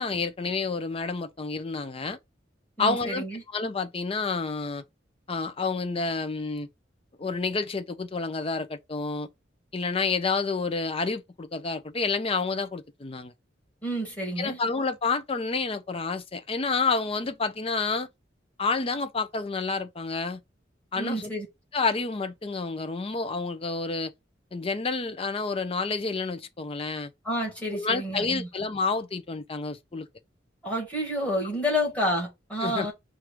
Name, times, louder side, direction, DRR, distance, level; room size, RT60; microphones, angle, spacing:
voice 1, 0.0-2.2 2.8-3.2 3.5-4.8 5.3-6.7 7.2-9.3 9.7-13.3 14.4-18.1 18.6-20.4 20.9-21.3 21.7-24.1 24.5-27.1 27.7-30.1 32.6-32.9, left 4 dB, 30° left, 0.5 m, -29 dB
voice 2, 2.8-3.4 13.8-14.6 21.0-21.5 27.2-28.5 30.6-32.9, equal, 10° left, 2.0 m, -29 dB
4.6 x 2.5 x 4.6 m
head